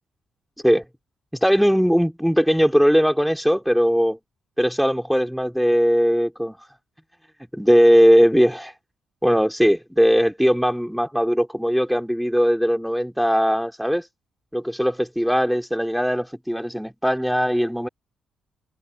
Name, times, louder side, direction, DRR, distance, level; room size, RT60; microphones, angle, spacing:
voice 1, 1.4-4.2 4.6-6.6 7.5-8.7 9.2-14.1 14.5-17.9, equal, ahead, 3.4 m, -19 dB
open air
cardioid pair, 85°, 0 cm